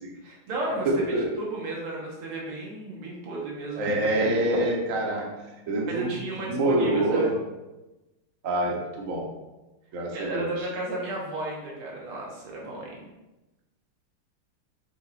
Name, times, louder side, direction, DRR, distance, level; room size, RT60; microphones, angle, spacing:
voice 1, 0.2-4.0 5.9-7.3 10.0-13.0, right 2 dB, 80° right, -3 dB, 2.2 m, -33 dB
voice 2, 0.8-1.3 3.8-5.3 5.7-6.1 6.4-7.3 8.4-9.3 9.9-10.7, right 1 dB, 50° right, 0 dB, 1.1 m, -26 dB
7.2 x 5.2 x 2.5 m, 1.0 s
omnidirectional pair, 2.4 m